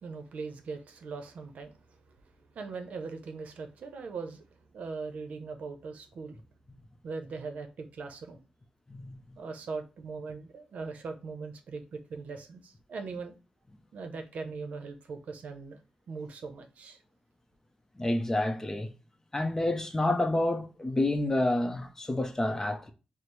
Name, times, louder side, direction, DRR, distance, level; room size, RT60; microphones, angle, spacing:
voice 1, 0.0-4.5 4.7-6.4 7.0-8.4 9.4-13.3 13.9-15.8 16.1-17.0, right 4 dB, 75° right, 0.6 m, -40 dB
voice 2, 8.9-9.4 18.0-18.9 19.3-22.9, left 1 dB, 20° left, 0.6 m, -29 dB
4.2 x 2.0 x 3.2 m
cardioid pair, 75°, 2 cm